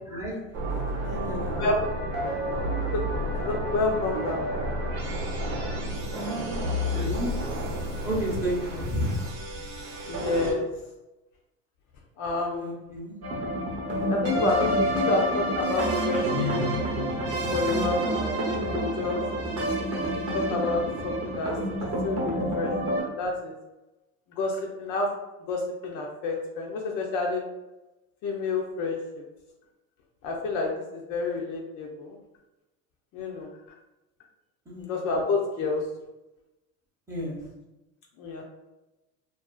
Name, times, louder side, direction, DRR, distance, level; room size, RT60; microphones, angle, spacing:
sound 1, 0.5-10.5, equal, 75° right, 0.8 m, -31 dB
voice 1, 1.0-1.6 2.5-2.6 3.8-3.9 5.6-6.4 6.9-7.3 8.0-9.2 12.6-13.2 17.7-17.9 34.7-34.9 37.1-37.4, equal, 5° right, -5 dB, 0.7 m, -32 dB
voice 2, 3.4-4.4 10.1-10.6 12.2-12.7 14.1-16.5 17.5-19.2 20.3-23.6 24.4-25.1 25.5-27.4 28.2-29.2 30.2-32.2 33.1-33.5 34.8-35.8 38.2-38.4, left 3 dB, 50° left, 0 dB, 0.5 m, -29 dB
sound 2, 13.2-23.0, right 1 dB, 35° right, 0.8 m, -28 dB
2.4 x 2.3 x 2.3 m, 1.0 s
supercardioid pair, 115°, 41 cm